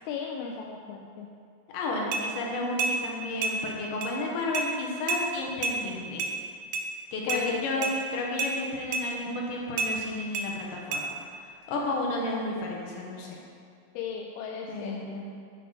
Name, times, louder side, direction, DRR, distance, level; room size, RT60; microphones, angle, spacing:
voice 1, 0.1-1.3 7.3-7.9 13.9-15.0, left 6 dB, 85° left, 1 dB, 2.2 m, -35 dB
voice 2, 1.7-6.3 7.1-11.2 11.4-13.4 14.7-15.2, left 2 dB, 70° left, -2 dB, 2.2 m, -32 dB
sound 1, 2.1-2.3 2.8-3.0 3.4-3.6 4.0-4.1 4.5-4.7 5.1-5.2 5.6-5.8 6.2-6.3 6.7-6.9 7.3-7.4 7.8-8.0 8.4-8.5 8.9-9.1 9.8-9.9 10.3-10.5 10.9-11.0, right 3 dB, 85° right, 2.7 m, -28 dB
11.0 x 4.8 x 3.9 m, 2.2 s
omnidirectional pair, 4.9 m